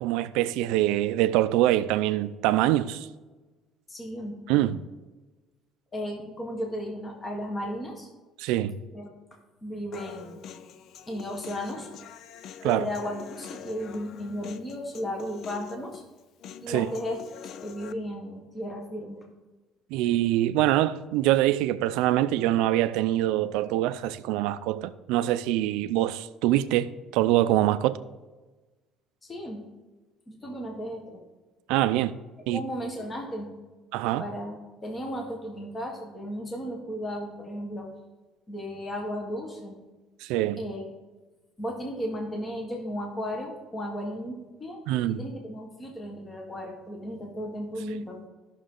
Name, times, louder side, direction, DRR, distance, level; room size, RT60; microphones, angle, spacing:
voice 1, 0.0-3.1 4.5-4.8 8.4-8.7 12.6-12.9 16.7-16.9 19.9-28.0 31.7-32.1 32.5-32.6 33.9-34.3 40.2-40.6 44.9-45.2, right 14 dB, 85° right, 0.5 m, -24 dB
voice 2, 3.9-4.4 5.9-8.1 8.9-9.1 9.6-10.4 11.1-11.9 12.6-16.0 16.6-17.2 17.6-19.2 29.2-29.6 30.3-31.2 32.5-33.5 34.2-37.9 38.5-39.8 40.6-40.9 41.6-44.8 45.1-48.2, equal, 15° left, 1.4 m, -35 dB
Human voice, 9.9-17.9, left 8 dB, 45° left, 0.4 m, -45 dB
13.0 x 6.3 x 3.8 m
cardioid pair, 170°, 0 cm